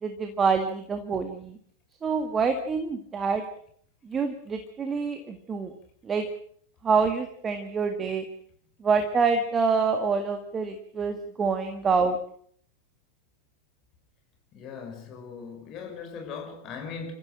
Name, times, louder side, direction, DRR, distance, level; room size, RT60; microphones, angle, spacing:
voice 1, 0.0-1.6 2.0-3.4 4.0-5.7 6.0-6.3 6.8-8.2 8.8-12.2, right 5 dB, 20° right, 1.9 m, -26 dB
voice 2, 14.5-17.1, left 5 dB, 35° left, 5.5 m, -39 dB
28.0 x 15.0 x 6.4 m
figure-of-eight pair, 90°, 0 cm